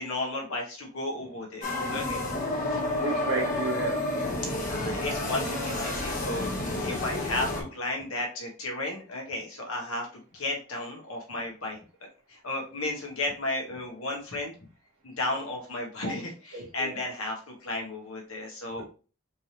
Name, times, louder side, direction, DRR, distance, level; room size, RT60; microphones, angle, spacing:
voice 1, 0.0-2.8 4.5-10.1 10.3-11.8 12.3-14.5 15.0-18.8, left 2 dB, 75° left, 0 dB, 1.5 m, -34 dB
sound 1, 1.6-7.6, left 2 dB, 35° left, 1.2 m, -30 dB
voice 2, 3.0-4.0 16.5-17.0 18.8-18.9, right 3 dB, 75° right, -2 dB, 1.7 m, -32 dB
4.4 x 3.4 x 2.9 m, 0.36 s
head